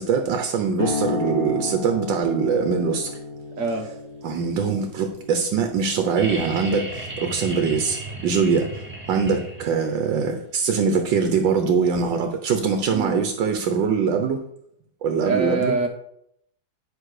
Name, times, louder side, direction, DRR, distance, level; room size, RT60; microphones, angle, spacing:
voice 1, 0.0-3.2 4.2-14.4 15.0-15.8, right 5 dB, 75° right, 5 dB, 1.6 m, -23 dB
sound 1, 0.8-7.9, left 4 dB, 35° left, 2.7 m, -33 dB
sound 2, 6.2-9.9 11.6-11.7, right 2 dB, 5° right, 2.4 m, -34 dB
voice 2, 15.2-15.9, right 3 dB, 45° right, 3 dB, 1.5 m, -24 dB
10.0 x 6.2 x 4.9 m, 0.73 s
omnidirectional pair, 2.0 m